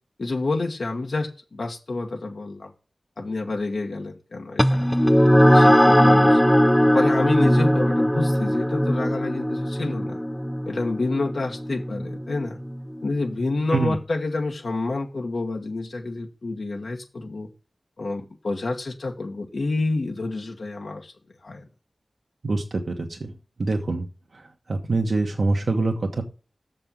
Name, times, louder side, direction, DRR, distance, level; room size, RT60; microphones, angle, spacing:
voice 1, 0.2-2.7 3.2-4.8 5.3-6.4 6.8-10.2 10.7-12.6 13.0-17.5 18.0-21.1 21.4-21.6, left 3 dB, 70° left, 1.3 m, -28 dB
sound 1, 4.6-13.4, equal, 5° left, 0.4 m, -19 dB
voice 2, 22.4-23.3 23.6-24.1 24.3-26.2, right 3 dB, 65° right, 1.2 m, -25 dB
6.8 x 5.4 x 7.3 m
wide cardioid pair, 70°, 0 cm